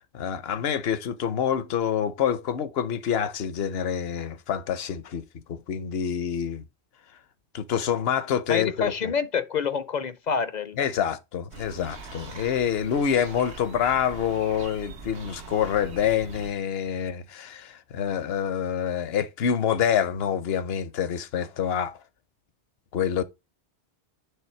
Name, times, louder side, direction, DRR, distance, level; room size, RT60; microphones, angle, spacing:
voice 1, 0.1-6.6 7.5-9.1 10.8-22.0 22.9-23.2, left 8 dB, 70° left, 1.0 m, -27 dB
voice 2, 8.5-10.9, left 6 dB, 50° left, 0.6 m, -27 dB
sound 1, 11.5-16.5, right 4 dB, 80° right, 1.5 m, -42 dB
9.1 x 3.3 x 4.3 m
omnidirectional pair, 1.1 m